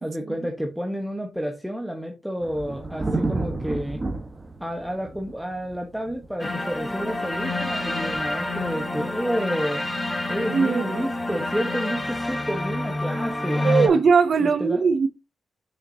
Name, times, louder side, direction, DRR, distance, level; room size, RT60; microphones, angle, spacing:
voice 1, 0.0-4.0 4.6-9.8 10.3-14.0 14.4-14.8, equal, ahead, 1.1 m, -30 dB
sound 1, 2.4-8.8, right 2 dB, 25° right, 1.2 m, -32 dB
sound 2, 6.4-13.9, left 2 dB, 15° left, 1.6 m, -28 dB
voice 2, 10.5-11.1 13.6-15.1, right 5 dB, 60° right, 0.6 m, -20 dB
7.0 x 5.9 x 2.8 m
wide cardioid pair, 110°, 0 cm